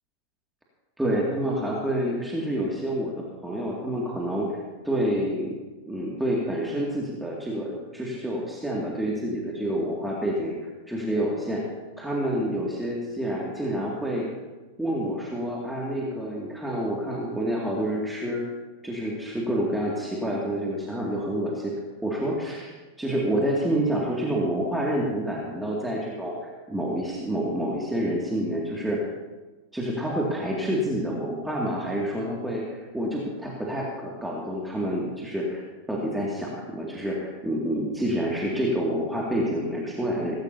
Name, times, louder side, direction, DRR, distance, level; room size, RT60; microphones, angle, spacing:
voice 1, 1.0-3.1 3.4-5.5 5.8-10.5 10.9-11.6 12.0-14.3 14.8-18.4 18.8-21.7 22.0-29.0 29.7-35.6 35.9-40.4, equal, 5° right, -3 dB, 2.4 m, -28 dB
18.0 x 16.5 x 2.8 m, 1.2 s
figure-of-eight pair, 90°, 0 cm